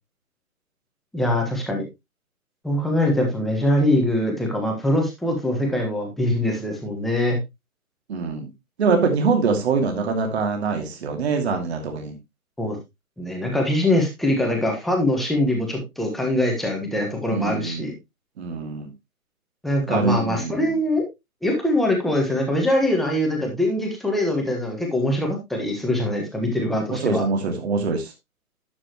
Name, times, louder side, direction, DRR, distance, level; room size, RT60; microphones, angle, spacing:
voice 1, 1.1-1.8 2.6-7.4 12.6-12.8 13.2-17.9 19.6-21.0 21.4-27.2, left 1 dB, ahead, 0 dB, 1.3 m, -23 dB
voice 2, 8.1-8.5 8.8-12.1 17.3-17.9 18.4-18.9 19.9-20.6 27.0-28.1, right 4 dB, 45° right, 4 dB, 2.5 m, -24 dB
11.0 x 7.5 x 3.0 m, 0.21 s
hypercardioid pair, 150°, 44 cm